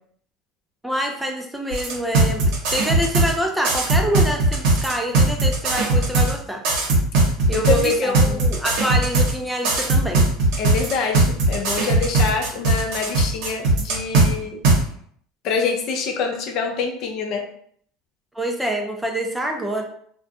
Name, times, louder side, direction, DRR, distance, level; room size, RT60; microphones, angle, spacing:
voice 1, 0.8-6.6 7.5-10.3 18.3-19.8, equal, 5° right, 2 dB, 0.4 m, -26 dB
sound 1, 1.7-3.3 3.6-6.3 6.6-9.3 9.6-14.3 14.6-14.8, right 2 dB, 70° right, 0.8 m, -18 dB
voice 2, 7.5-8.4 10.6-14.6 15.4-17.4, left 5 dB, 55° left, 2 dB, 0.5 m, -26 dB
2.5 x 2.2 x 2.5 m, 0.63 s
supercardioid pair, 105°, 0 cm